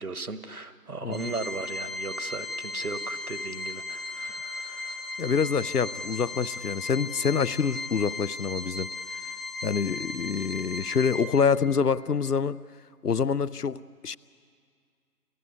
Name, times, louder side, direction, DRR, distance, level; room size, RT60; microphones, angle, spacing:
voice 1, 0.0-5.2, right 3 dB, 65° right, 12 dB, 1.4 m, -37 dB
Organ, 1.1-11.7, left 3 dB, ahead, 0.6 m, -36 dB
voice 2, 5.2-9.2 9.6-12.6 13.0-14.2, left 6 dB, 75° left, 19 dB, 0.7 m, -26 dB
29.5 x 13.0 x 9.6 m, 2.2 s
figure-of-eight pair, 165°, 47 cm